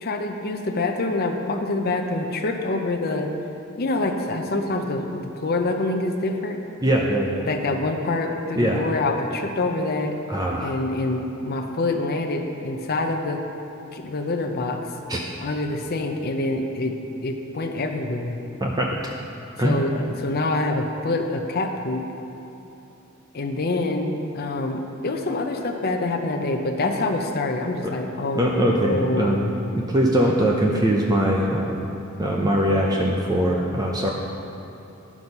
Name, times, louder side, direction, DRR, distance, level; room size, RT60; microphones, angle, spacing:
voice 1, 0.0-3.3 3.8-6.6 7.4-10.2 10.6-13.4 13.9-14.9 15.4-16.9 17.2-18.4 19.6-22.0 23.3-29.5, left 2 dB, 45° left, 3 dB, 0.6 m, -26 dB
voice 2, 6.8-7.5 8.6-8.8 10.3-10.7 15.1-15.2 18.6-19.0 19.6-20.0 28.3-29.5 29.7-31.8 32.2-34.1, right 1 dB, 20° right, -1 dB, 0.6 m, -22 dB
11.5 x 6.0 x 5.4 m, 2.9 s
head